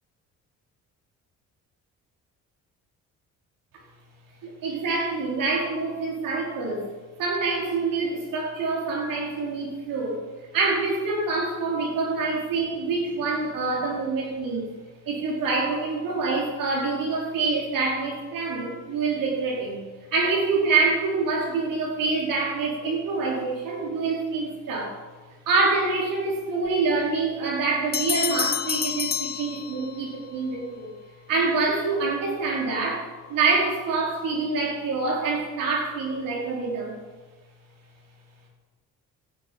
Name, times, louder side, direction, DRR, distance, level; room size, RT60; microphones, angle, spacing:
voice 1, 4.4-6.9 7.2-10.2 10.5-14.7 15.0-19.8 20.1-25.0 25.5-30.9 31.3-37.0, right 3 dB, 75° right, -2 dB, 4.7 m, -26 dB
Bell, 27.9-30.2, left 8 dB, 30° left, 0.5 m, -28 dB
16.0 x 11.0 x 5.5 m, 1.3 s
supercardioid pair, 70°, 33 cm